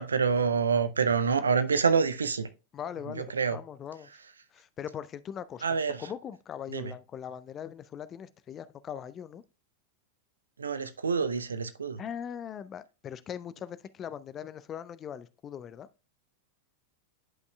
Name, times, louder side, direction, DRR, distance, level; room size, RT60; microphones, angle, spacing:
voice 1, 0.0-2.5 3.1-3.6 5.6-6.0 6.7-6.9 10.6-12.0, right 5 dB, 75° right, 0.6 m, -27 dB
voice 2, 2.7-4.1 4.5-5.7 6.0-9.4 12.0-15.9, left 9 dB, 25° left, 0.4 m, -40 dB
10.5 x 5.4 x 2.2 m
figure-of-eight pair, 90°, 0 cm